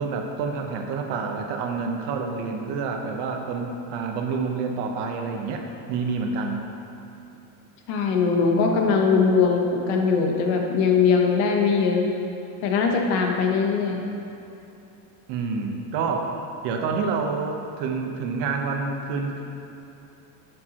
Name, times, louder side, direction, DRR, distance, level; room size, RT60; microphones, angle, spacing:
voice 1, 0.0-6.7 15.3-16.3 16.6-19.4, right 4 dB, 60° right, 3 dB, 0.9 m, -28 dB
voice 2, 7.9-12.1 12.6-14.0, left 5 dB, 55° left, 2 dB, 1.0 m, -21 dB
11.0 x 6.7 x 2.9 m, 2.9 s
cardioid pair, 175°, 47 cm